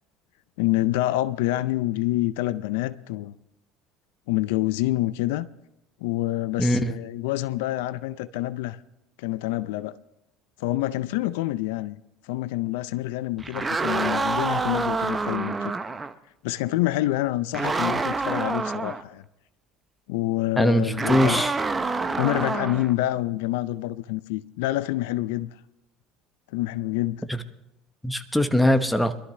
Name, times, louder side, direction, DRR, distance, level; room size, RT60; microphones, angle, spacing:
voice 1, 0.6-3.3 4.3-5.5 6.0-8.8 9.2-10.0 10.6-12.0 12.2-15.7 16.4-19.2 20.1-21.4 22.1-25.6 26.5-27.2, left 16 dB, 75° left, 0.4 m, -27 dB
voice 2, 6.6-6.9 20.6-21.5 27.3-27.4 28.0-29.1, equal, 5° left, 1.2 m, -21 dB
sound 1, 13.4-16.1 17.5-19.0 21.0-22.9, right 3 dB, 20° right, 0.9 m, -27 dB
22.0 x 13.0 x 3.3 m
hypercardioid pair, 80°, 0 cm